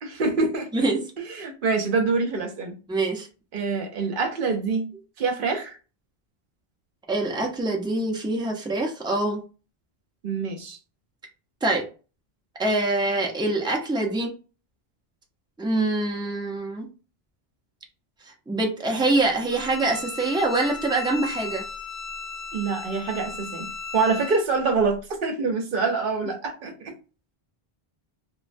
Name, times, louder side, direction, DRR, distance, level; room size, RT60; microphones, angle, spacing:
voice 1, 0.0-0.9 1.3-2.8 3.5-4.9 5.2-5.8 10.2-10.8 22.5-26.9, right 4 dB, 65° right, 5 dB, 0.8 m, -26 dB
voice 2, 2.9-3.3 7.1-9.4 11.6-11.8 12.6-14.3 15.6-16.9 18.5-21.6, right 2 dB, 5° right, 0 dB, 0.3 m, -24 dB
Bowed string instrument, 19.5-24.4, left 5 dB, 65° left, 0.8 m, -36 dB
3.0 x 2.1 x 2.5 m, 0.34 s
omnidirectional pair, 1.0 m